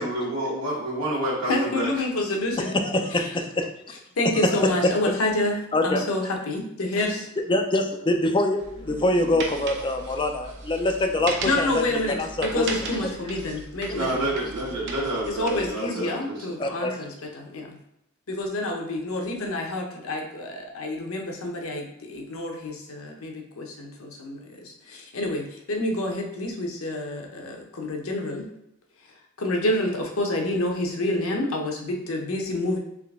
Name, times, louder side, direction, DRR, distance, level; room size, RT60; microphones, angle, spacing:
voice 1, 0.0-2.0 13.9-16.5, right 1 dB, 85° right, -7 dB, 1.2 m, -28 dB
voice 2, 1.5-2.7 3.1-3.3 4.2-7.3 11.5-14.3 15.4-17.8 18.3-28.5 29.4-32.8, left 1 dB, 80° left, 1 dB, 0.8 m, -28 dB
voice 3, 2.6-3.7 4.3-4.7 5.7-6.0 7.5-11.7 12.2-12.6 16.0-16.1 16.6-17.0, left 1 dB, 25° left, 4 dB, 0.4 m, -24 dB
sound 1, 8.6-15.7, right 3 dB, 60° right, 0.7 m, -37 dB
3.7 x 3.3 x 3.5 m, 0.80 s
head